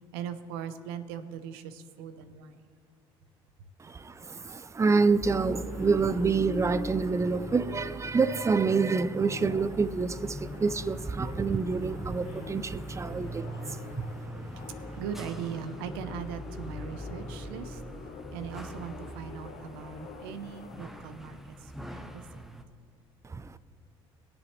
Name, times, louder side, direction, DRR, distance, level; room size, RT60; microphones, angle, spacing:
voice 1, 0.1-2.6 14.0-14.1 15.0-17.8 18.3-22.4, right 8 dB, 80° right, 12 dB, 0.8 m, -40 dB
voice 2, 3.8-13.8 14.8-14.9 23.3-23.6, right 4 dB, 25° right, 16 dB, 0.6 m, -27 dB
sound 1, 5.2-22.6, equal, ahead, 1.0 m, -42 dB
sound 2, 5.3-21.0, left 4 dB, 60° left, 1.2 m, -45 dB
22.0 x 7.3 x 3.2 m, 2.2 s
hypercardioid pair, 70°, 13 cm